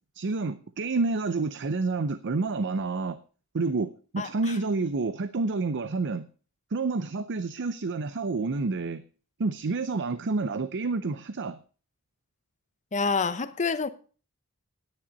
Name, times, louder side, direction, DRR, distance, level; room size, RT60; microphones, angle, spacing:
voice 1, 0.1-3.2 3.5-6.3 6.7-9.0 9.4-11.6, right 3 dB, 55° right, 0.6 m, -29 dB
voice 2, 12.9-13.9, left 4 dB, 35° left, 0.8 m, -27 dB
10.0 x 9.9 x 5.3 m
head